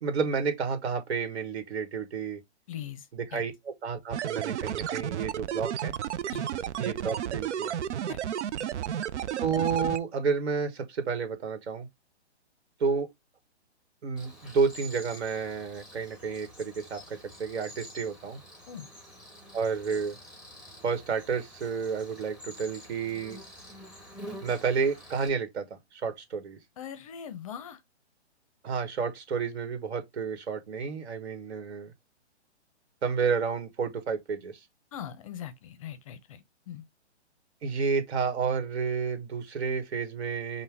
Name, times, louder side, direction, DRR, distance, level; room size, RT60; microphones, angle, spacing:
voice 1, 0.0-2.4 3.1-5.9 6.8-7.8 9.4-11.9 12.8-13.1 14.0-18.4 19.5-20.2 20.8-23.4 24.4-26.6 28.6-31.9 33.0-34.6 37.6-40.6, right 5 dB, 65° right, 1.5 m, -30 dB
voice 2, 2.7-3.1 3.3-3.4 6.3-6.5 8.1-8.2 8.6-8.7 18.7-18.9 26.8-27.8 34.9-36.8, left 9 dB, 30° left, 0.6 m, -41 dB
sound 1, 4.1-10.0, right 10 dB, 85° right, 0.5 m, -32 dB
Cricket, 14.2-25.3, equal, ahead, 0.7 m, -48 dB
5.5 x 2.2 x 3.4 m
hypercardioid pair, 150°, 34 cm